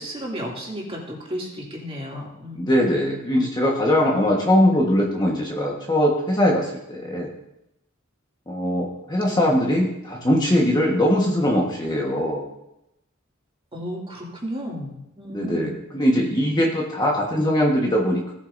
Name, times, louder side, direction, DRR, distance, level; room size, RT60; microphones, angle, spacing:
voice 1, 0.0-2.8 9.2-9.5 13.7-15.7, equal, 30° right, -3 dB, 2.6 m, -33 dB
voice 2, 2.5-7.3 8.5-12.4 15.3-18.3, left 1 dB, 20° left, -1 dB, 1.4 m, -21 dB
17.5 x 8.5 x 2.6 m, 0.88 s
head